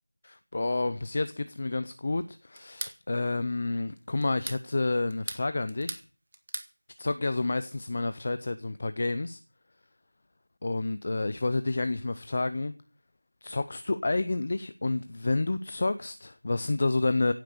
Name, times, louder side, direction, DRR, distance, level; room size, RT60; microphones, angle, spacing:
voice 1, 0.2-6.0 7.0-9.4 10.6-12.7 13.4-17.3, left 2 dB, 25° left, 0.6 m, -29 dB
sound 1, 2.6-3.0 4.2-4.6 5.1-6.1 6.3-6.7, right 2 dB, 35° right, 1.7 m, -38 dB
16.5 x 9.4 x 6.6 m
figure-of-eight pair, 175°, 0 cm